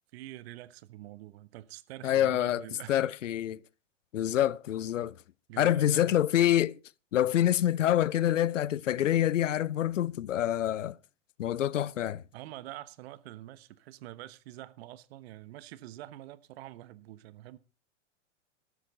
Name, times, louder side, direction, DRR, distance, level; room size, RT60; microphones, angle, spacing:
voice 1, 0.1-3.1 5.0-5.1 5.5-6.1 12.3-17.6, right 15 dB, 55° right, 1.2 m, -46 dB
voice 2, 2.0-3.6 4.1-5.1 5.6-6.8 7.1-11.0 11.4-12.2, left 12 dB, 80° left, 0.6 m, -26 dB
13.5 x 13.0 x 3.9 m
hypercardioid pair, 105°, 37 cm